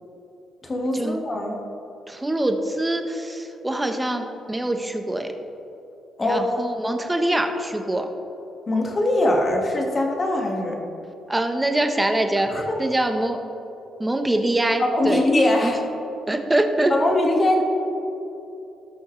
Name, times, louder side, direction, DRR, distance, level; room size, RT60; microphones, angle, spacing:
voice 1, 0.6-1.6 6.2-6.5 8.7-10.8 12.5-12.8 14.8-15.8 16.9-17.6, left 1 dB, 30° left, 0 dB, 1.8 m, -22 dB
voice 2, 2.1-5.3 6.2-8.1 11.3-13.4 14.0-15.2 15.6-15.7 16.3-16.9, right 1 dB, 10° right, 5 dB, 1.1 m, -24 dB
18.5 x 6.2 x 3.3 m, 3.0 s
cardioid pair, 90°, 0 cm